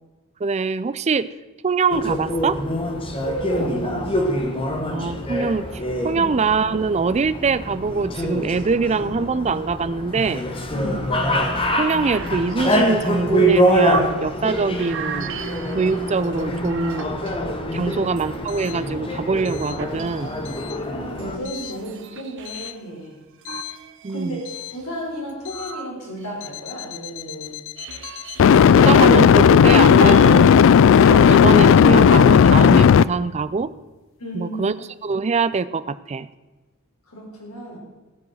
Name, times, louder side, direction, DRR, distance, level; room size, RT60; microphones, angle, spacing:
voice 1, 0.4-1.3 1.6-2.6 4.9-10.4 11.8-15.4 15.7-17.2 17.7-20.4 24.0-24.4 28.5-30.5 31.0-33.7 34.3-34.7 35.0-36.3, right 4 dB, 30° right, 15 dB, 0.4 m, -23 dB
sound 1, 1.9-21.4, equal, 25° left, 1.2 m, -25 dB
voice 2, 3.2-4.4 6.1-6.3 10.7-11.1 17.8-18.0 20.7-23.2 24.1-27.5 34.2-34.7 37.1-37.8, right 1 dB, 85° left, -2 dB, 3.7 m, -33 dB
sound 2, 11.5-14.2 14.5-17.6 18.1-22.7 23.4-26.5 27.2-28.7 29.1-30.5 30.8-31.2, right 4 dB, 60° right, 0.9 m, -35 dB
sound 3, 23.5-23.7 28.4-33.0, left 7 dB, 60° left, 0.3 m, -12 dB
16.5 x 7.3 x 6.3 m, 1.2 s
head